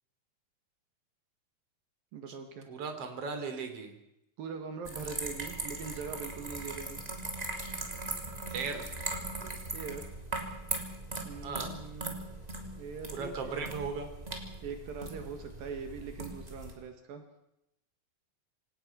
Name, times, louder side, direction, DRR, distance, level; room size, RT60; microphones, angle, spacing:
voice 1, 2.1-2.7 4.4-7.0 9.7-10.1 11.2-12.2 12.8-13.7 14.6-17.2, right 5 dB, 75° right, 6 dB, 3.7 m, -42 dB
voice 2, 2.6-3.9 8.5-8.9 11.4-11.8 13.1-14.1, right 4 dB, 40° right, 6 dB, 4.0 m, -37 dB
sound 1, 4.8-16.7, right 2 dB, 10° right, 3.0 m, -39 dB
27.0 x 18.0 x 5.9 m, 0.83 s
omnidirectional pair, 4.1 m